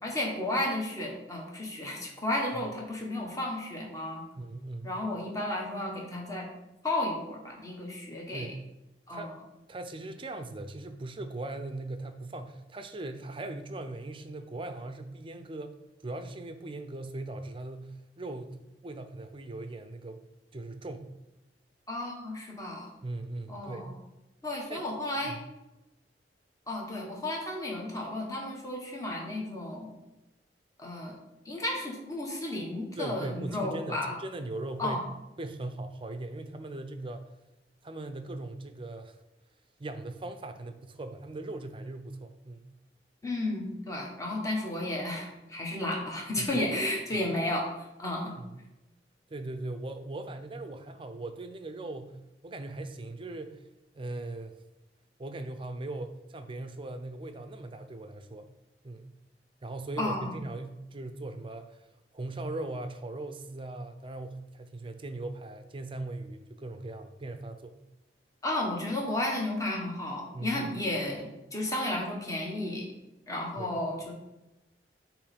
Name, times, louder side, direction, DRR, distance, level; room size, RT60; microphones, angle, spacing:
voice 1, 0.0-4.2 4.8-6.5 6.8-8.5 9.1-9.3 21.9-22.9 23.5-23.9 24.4-25.4 26.7-29.9 30.8-31.1 31.4-34.2 34.8-35.0 43.2-48.3 60.0-60.4 68.4-72.8 73.3-74.1, left 1 dB, 20° left, -1 dB, 1.5 m, -33 dB
voice 2, 4.4-4.9 8.3-8.7 9.1-9.3 9.7-15.7 16.0-20.2 20.5-21.1 23.0-24.0 24.7-24.8 25.2-25.4 33.0-35.1 35.4-37.3 37.8-39.1 39.8-42.7 46.4-46.7 47.1-47.2 48.4-48.5 49.3-53.6 53.9-54.6 55.2-58.4 58.8-59.1 59.6-61.9 62.1-67.8 70.3-70.7 73.6-73.7, right 2 dB, 30° right, 8 dB, 0.6 m, -39 dB
8.4 x 3.2 x 5.2 m, 0.96 s
head